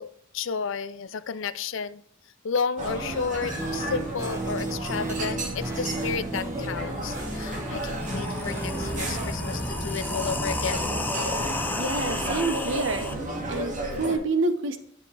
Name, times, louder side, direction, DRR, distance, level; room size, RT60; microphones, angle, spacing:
voice 1, 0.0-2.0 2.4-10.9, left 5 dB, 65° left, 15 dB, 0.5 m, -32 dB
sound 1, 2.8-14.2, right 1 dB, 40° right, 2.1 m, -33 dB
sound 2, 3.6-8.9, right 2 dB, 15° right, 1.2 m, -34 dB
sound 3, 7.9-13.1, left 2 dB, 10° left, 0.8 m, -31 dB
voice 2, 11.8-13.1 13.5-14.8, right 3 dB, 65° right, 9 dB, 0.9 m, -27 dB
9.9 x 7.2 x 3.3 m, 0.67 s
head